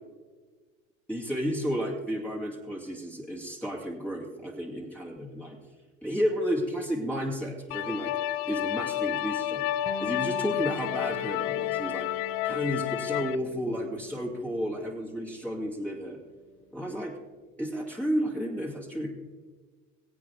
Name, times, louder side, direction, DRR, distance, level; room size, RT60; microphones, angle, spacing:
voice 1, 1.1-5.6 6.0-8.1 8.5-9.6 10.0-12.1 12.4-16.2 16.7-17.1 17.6-19.1, equal, 5° left, -4 dB, 2.6 m, -32 dB
sound 1, 7.7-13.4, left 13 dB, 70° left, 0.6 m, -30 dB
Electric guitar, 9.9-17.0, left 2 dB, 40° left, 1.3 m, -45 dB
22.0 x 8.4 x 3.5 m, 1.4 s
hypercardioid pair, 80°, 37 cm